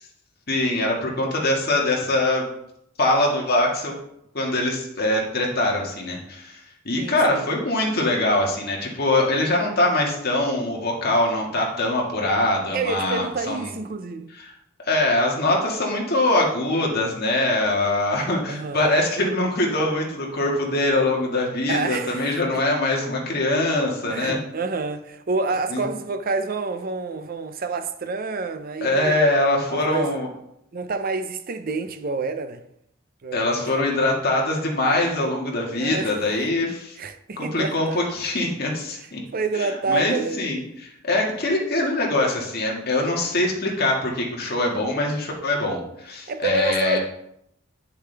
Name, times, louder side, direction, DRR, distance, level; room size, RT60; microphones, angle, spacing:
voice 1, 0.5-2.4 3.0-3.9 4.3-6.6 6.8-13.7 14.4-14.5 14.8-24.4 25.7-25.9 28.8-30.3 33.3-37.0 37.4-39.2 39.6-47.0, left 2 dB, 50° left, 1.8 m, -23 dB
voice 2, 7.0-7.4 12.7-14.3 18.5-18.9 21.7-22.6 24.1-29.2 29.7-30.2 30.7-32.6 33.2-33.7 35.7-36.2 37.0-38.1 39.3-40.4 46.3-47.0, right 4 dB, 45° right, 0.5 m, -28 dB
9.5 x 6.6 x 3.4 m
head